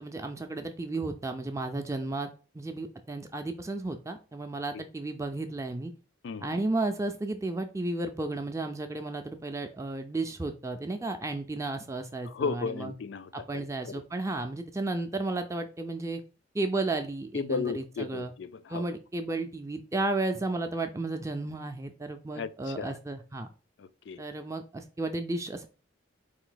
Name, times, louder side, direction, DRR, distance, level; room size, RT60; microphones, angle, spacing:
voice 1, 0.0-2.3 2.5-5.9 6.4-12.9 13.5-16.2 16.5-18.3 18.7-23.5 24.2-25.7, right 2 dB, 15° right, 0.4 m, -33 dB
voice 2, 6.2-6.6 12.3-14.0 17.3-18.8 22.3-23.0 23.8-24.2, left 5 dB, 65° left, 0.4 m, -35 dB
4.4 x 2.6 x 3.9 m
head